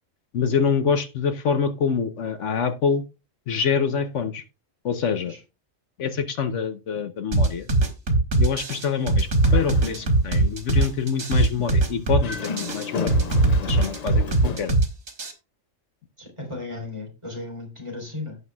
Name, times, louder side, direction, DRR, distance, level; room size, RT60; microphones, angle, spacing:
voice 1, 0.3-3.0 3.5-4.4 4.8-5.3 6.0-7.7 8.4-13.1 13.6-14.7, left 6 dB, 70° left, 9 dB, 1.1 m, -26 dB
sound 1, 7.3-15.3, right 2 dB, 80° right, 2.2 m, -20 dB
Dog, 9.2-10.3 10.7-10.8 12.1-14.7, left 5 dB, 45° left, 0.6 m, -34 dB
voice 2, 16.2-18.4, left 2 dB, 20° right, -1 dB, 3.5 m, -35 dB
16.5 x 5.8 x 2.3 m, 0.29 s
omnidirectional pair, 1.3 m